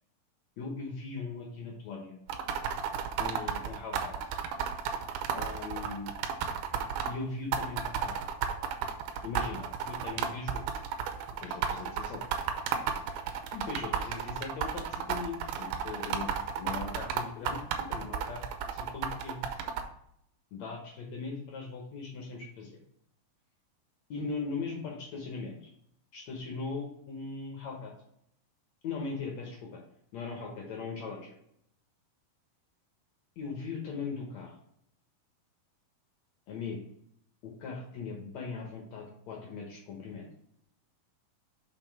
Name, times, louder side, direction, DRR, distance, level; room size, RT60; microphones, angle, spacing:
voice 1, 0.6-2.1 3.2-4.1 5.3-6.1 7.0-8.1 9.2-10.6 11.4-12.2 13.5-16.3 16.6-17.6 17.9-19.5 20.5-22.8 24.1-25.7 26.1-27.9 28.8-29.8 30.1-31.3 33.4-34.6 36.5-36.8 37.4-40.3, left 4 dB, 70° left, 0 dB, 1.7 m, -39 dB
sound 1, 2.3-7.1 7.5-19.8, right 7 dB, 85° right, 2.5 m, -33 dB
6.0 x 4.5 x 4.6 m, 0.72 s
omnidirectional pair, 4.5 m